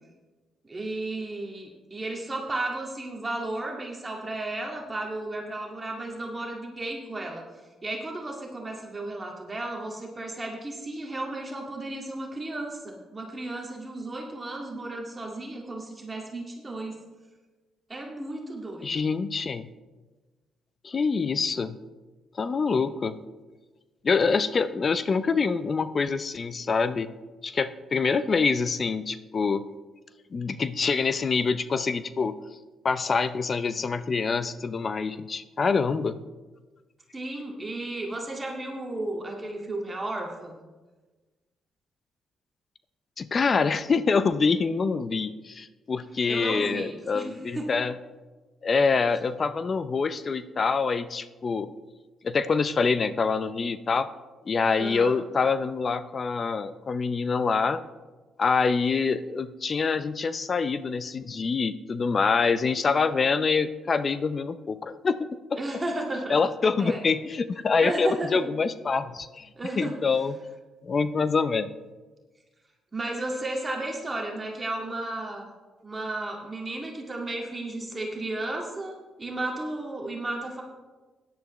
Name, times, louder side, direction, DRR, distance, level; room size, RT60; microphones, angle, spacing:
voice 1, 0.6-7.4 7.8-16.9 17.9-19.1 37.1-40.6 46.3-47.7 54.8-55.2 65.6-66.4 66.8-67.0 67.8-68.4 69.6-70.0 72.9-75.5 75.8-80.6, right 2 dB, 25° right, 0 dB, 1.9 m, -34 dB
voice 2, 18.8-19.7 20.8-21.8 22.4-23.2 24.0-27.1 27.4-29.6 30.3-32.4 32.8-36.2 43.2-47.9 48.6-51.7 52.2-54.1 54.5-57.8 58.4-65.6 66.3-69.5 69.8-70.4 70.8-71.7, left 5 dB, 40° left, 13 dB, 0.6 m, -25 dB
16.5 x 10.5 x 3.1 m, 1.3 s
cardioid pair, 90°, 0 cm